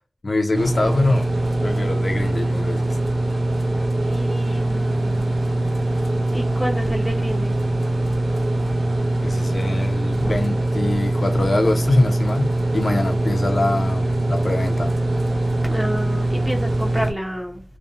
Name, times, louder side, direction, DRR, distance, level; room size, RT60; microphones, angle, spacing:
voice 1, 0.2-1.3 1.6-3.0 9.2-14.9, left 2 dB, 65° left, 0.4 m, -23 dB
sound 1, 0.5-17.1, right 1 dB, 75° right, 0.4 m, -22 dB
voice 2, 4.0-5.4 6.3-7.5 8.5-8.7 10.2-10.4 15.6-17.8, equal, 5° right, 0.5 m, -30 dB
2.5 x 2.0 x 2.6 m
wide cardioid pair, 75°, 0 cm